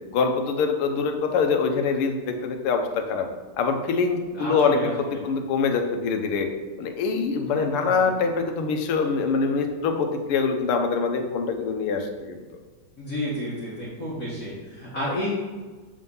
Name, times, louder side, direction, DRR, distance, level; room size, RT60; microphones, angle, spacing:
voice 1, 0.1-3.3 3.6-6.5 6.8-12.4, left 5 dB, 90° left, 4 dB, 1.7 m, -24 dB
voice 2, 4.3-5.2 7.5-8.1 13.0-15.3, equal, 45° left, -6 dB, 1.6 m, -31 dB
7.5 x 3.7 x 5.4 m, 1.4 s
omnidirectional pair, 2.3 m